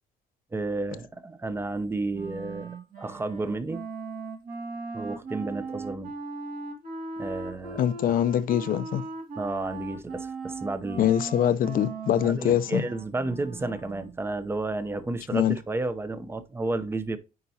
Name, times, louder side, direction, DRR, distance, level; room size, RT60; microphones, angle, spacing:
voice 1, 0.5-3.9 4.9-6.1 7.2-8.2 9.4-11.1 12.2-17.2, right 2 dB, 15° right, 0.7 m, -32 dB
Wind instrument woodwind instrument, 2.1-14.2, right 3 dB, 55° right, 1.9 m, -38 dB
voice 2, 7.8-9.0 11.0-12.8 15.3-15.6, left 10 dB, 55° left, 0.6 m, -24 dB
9.5 x 4.5 x 2.8 m
cardioid pair, 110°, 17 cm